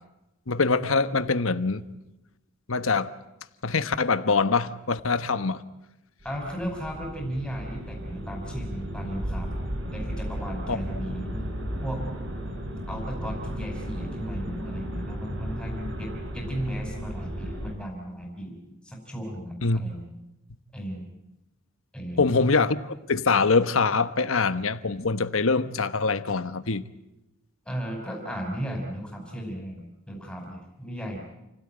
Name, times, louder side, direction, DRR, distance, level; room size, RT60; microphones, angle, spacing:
voice 1, 0.5-1.8 2.7-3.1 3.6-5.6 10.7-10.8 19.6-19.8 22.2-26.8, left 4 dB, 75° left, 1.1 m, -24 dB
voice 2, 6.2-9.5 9.9-11.3 11.8-12.1 12.9-20.1 20.7-21.1 21.9-22.3 27.7-31.2, equal, 5° left, 5.3 m, -35 dB
sound 1, 6.2-17.7, equal, 60° right, 3.7 m, -34 dB
29.0 x 17.0 x 8.9 m
head